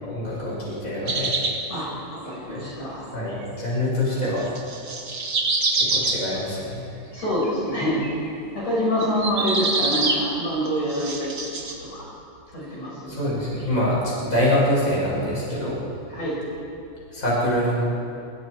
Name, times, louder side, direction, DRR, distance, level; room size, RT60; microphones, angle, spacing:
voice 1, 0.0-1.3 2.5-2.7 3.1-4.4 5.8-6.9 13.1-15.8 17.1-17.8, left 1 dB, 20° left, -7 dB, 7.6 m, -25 dB
sound 1, 1.1-1.6 4.4-6.2 7.2-7.5 8.0-8.3 9.0-10.2 10.7-11.7, right 3 dB, 35° right, 2.3 m, -25 dB
voice 2, 2.2-3.0 7.1-8.0 8.5-12.1 12.5-13.2 16.1-16.4, equal, 45° left, -6 dB, 7.2 m, -26 dB
27.5 x 27.0 x 4.9 m, 2.6 s
omnidirectional pair, 4.1 m